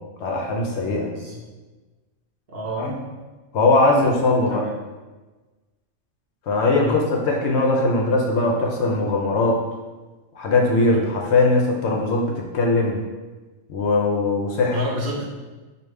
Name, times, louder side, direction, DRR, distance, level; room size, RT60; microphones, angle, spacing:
voice 1, 0.2-1.1 2.8-3.0 3.5-4.6 6.5-9.6 10.3-13.0 13.7-14.8, left 2 dB, 65° left, 0 dB, 0.8 m, -20 dB
voice 2, 1.1-1.4 2.5-2.9 4.5-4.7 6.7-7.0 14.7-15.2, equal, 50° right, -4 dB, 0.9 m, -29 dB
4.9 x 2.5 x 3.2 m, 1.2 s
omnidirectional pair, 1.3 m